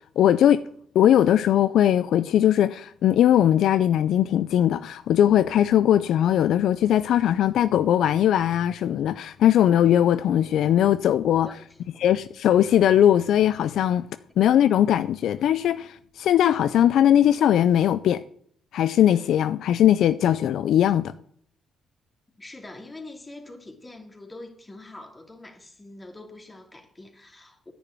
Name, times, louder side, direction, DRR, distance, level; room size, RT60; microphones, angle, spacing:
voice 1, 0.2-0.6 0.9-11.5 12.0-14.0 14.4-18.2 18.7-21.1, left 10 dB, 75° left, 0.4 m, -20 dB
voice 2, 11.4-11.8 22.4-27.7, left 2 dB, 20° left, 2.7 m, -44 dB
10.0 x 6.9 x 9.0 m
cardioid pair, 90°, 0 cm